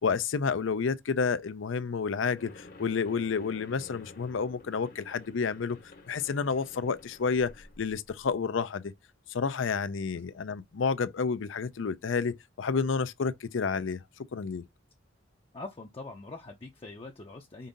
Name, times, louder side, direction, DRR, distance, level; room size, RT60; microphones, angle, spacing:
voice 1, 0.0-5.8 6.1-8.9 9.3-14.0 14.3-14.6, left 5 dB, 75° left, 0.5 m, -30 dB
sound 1, 2.4-8.4, left 2 dB, 50° left, 0.9 m, -51 dB
voice 2, 15.5-17.7, left 3 dB, 30° left, 0.6 m, -43 dB
5.3 x 2.6 x 3.9 m
head